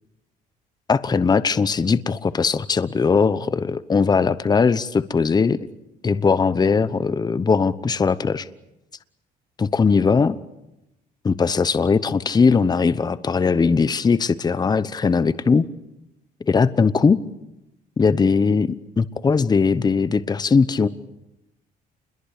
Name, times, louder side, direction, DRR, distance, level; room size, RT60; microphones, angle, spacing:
voice 1, 0.9-5.6 6.0-8.5 9.6-10.4 11.2-15.7 16.5-17.2 18.0-20.9, left 5 dB, 25° left, 1.0 m, -19 dB
29.0 x 22.0 x 8.4 m
cardioid pair, 110°, 17 cm